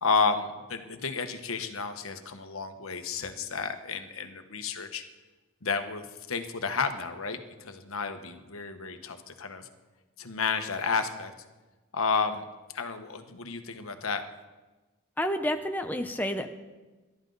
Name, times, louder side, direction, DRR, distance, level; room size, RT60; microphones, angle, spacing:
voice 1, 0.0-5.0 5.6-9.7 10.2-11.3 11.9-12.4 12.7-14.2, left 4 dB, 75° left, 7 dB, 1.2 m, -31 dB
voice 2, 15.2-16.5, equal, 10° left, 5 dB, 0.7 m, -29 dB
27.5 x 12.5 x 4.0 m, 1.2 s
head